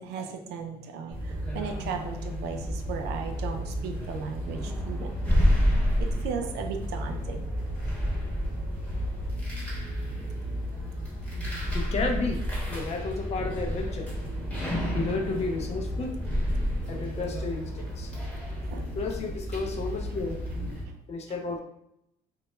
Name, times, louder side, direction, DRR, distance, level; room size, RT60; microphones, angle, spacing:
voice 1, 0.0-5.4 6.0-7.5 10.2-10.3 10.7-10.8 11.4-11.6 18.7-18.9 21.3-21.4, right 6 dB, 80° right, 5 dB, 0.4 m, -36 dB
sound 1, 1.1-20.8, equal, 5° left, 1.0 m, -30 dB
voice 2, 11.7-12.4 12.7-14.1 14.9-16.2 16.9-18.1 19.0-20.7 21.1-21.6, left 3 dB, 40° left, 3 dB, 0.4 m, -32 dB
2.1 x 2.0 x 3.0 m, 0.79 s
cardioid pair, 110°, 17 cm